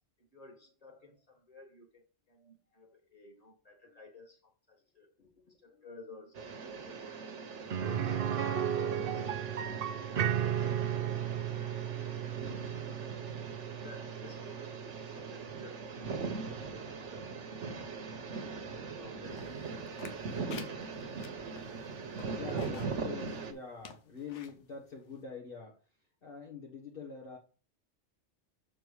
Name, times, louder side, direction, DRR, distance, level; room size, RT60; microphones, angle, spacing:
voice 1, 0.3-5.1 5.5-6.5 6.8-7.1 7.5-10.0 10.3-11.6 12.6-12.7 13.4-17.3 18.4-19.9 20.2-20.8 22.5-23.0, left 3 dB, 35° left, 1 dB, 2.4 m, -56 dB
voice 2, 5.2-5.9 22.3-27.4, left 5 dB, 55° left, -2 dB, 1.7 m, -46 dB
sound 1, 6.3-23.5, right 4 dB, 85° right, 1.4 m, -41 dB
sound 2, 7.7-17.5 17.8-17.9 20.3-20.4, right 9 dB, 60° right, 0.8 m, -35 dB
sound 3, 19.4-23.0 23.4-23.5 23.8-24.6 25.1-25.2, left 6 dB, 85° left, 1.2 m, -51 dB
6.9 x 4.4 x 4.7 m, 0.36 s
omnidirectional pair, 1.2 m